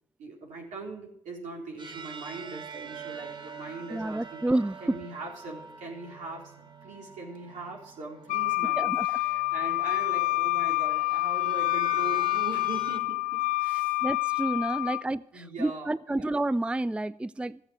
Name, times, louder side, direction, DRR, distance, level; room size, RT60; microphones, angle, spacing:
voice 1, 0.2-4.4 4.8-14.0 15.3-16.2, right 3 dB, 75° right, -1 dB, 4.1 m, -41 dB
sound 1, 1.8-13.0, right 5 dB, 35° right, 1.7 m, -46 dB
voice 2, 3.9-5.0 8.8-9.1 14.0-17.6, right 2 dB, 10° right, 17 dB, 0.4 m, -29 dB
Wind instrument woodwind instrument, 8.3-15.0, left 22 dB, 85° left, 0.5 m, -27 dB
14.5 x 7.8 x 8.2 m, 0.74 s
supercardioid pair, 50°, 13 cm